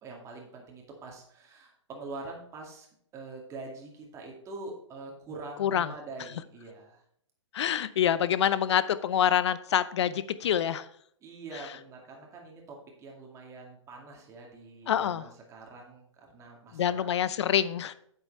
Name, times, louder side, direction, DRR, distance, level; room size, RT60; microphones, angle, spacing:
voice 1, 0.0-2.9 3.1-7.0 11.2-17.2, right 3 dB, 20° right, 0 dB, 2.3 m, -44 dB
voice 2, 7.5-10.9 14.9-15.2 16.7-17.9, left 9 dB, 60° left, 15 dB, 0.7 m, -26 dB
8.3 x 8.2 x 4.2 m, 0.67 s
hypercardioid pair, 140°, 16 cm